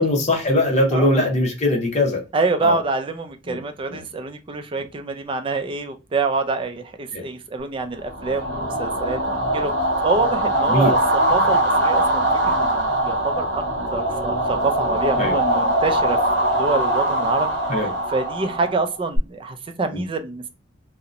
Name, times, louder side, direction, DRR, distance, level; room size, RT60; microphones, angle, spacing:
voice 1, 0.0-2.2 2.6-2.8 3.5-3.6 3.9-4.0 7.1-7.2 10.7-10.9 15.2-15.3 17.7-17.9 19.9-20.0, left 1 dB, 40° left, 0.8 m, -20 dB
voice 2, 0.9-1.3 2.3-13.6 13.9-16.2 16.6-17.5 18.1-20.5, right 3 dB, 30° right, 0.3 m, -26 dB
sound 1, 8.0-19.2, right 1 dB, 75° right, 0.8 m, -22 dB
2.8 x 2.0 x 2.4 m
head